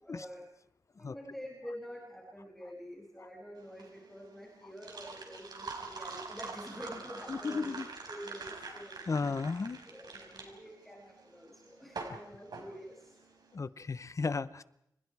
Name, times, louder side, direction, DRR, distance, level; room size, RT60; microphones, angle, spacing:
voice 1, 0.0-0.4 1.0-7.8 8.1-9.0 9.9-13.2, equal, 5° left, -3 dB, 6.6 m, -47 dB
sound 1, 3.6-13.4, right 4 dB, 70° right, 5.4 m, -45 dB
voice 2, 7.3-7.9 9.1-9.8 13.5-14.6, left 4 dB, 45° left, 16 dB, 0.8 m, -34 dB
29.5 x 27.5 x 4.8 m, 0.76 s
wide cardioid pair, 95°, 7 cm